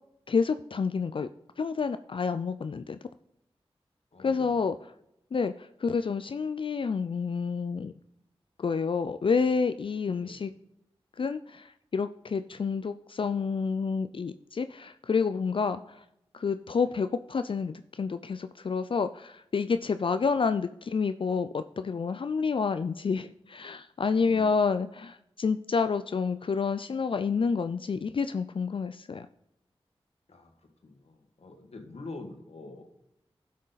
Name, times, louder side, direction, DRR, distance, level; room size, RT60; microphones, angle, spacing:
voice 1, 0.3-1.3 1.6-3.0 4.2-4.8 5.3-7.9 8.6-10.5 11.2-16.0 16.3-29.3, left 5 dB, 55° left, 11 dB, 0.4 m, -29 dB
voice 2, 4.1-4.6 10.1-10.4 16.8-16.9 24.2-24.5 30.3-30.5 30.8-32.9, left 3 dB, 75° left, 4 dB, 1.7 m, -45 dB
12.0 x 6.4 x 4.0 m, 0.81 s
cardioid pair, 50°, 10 cm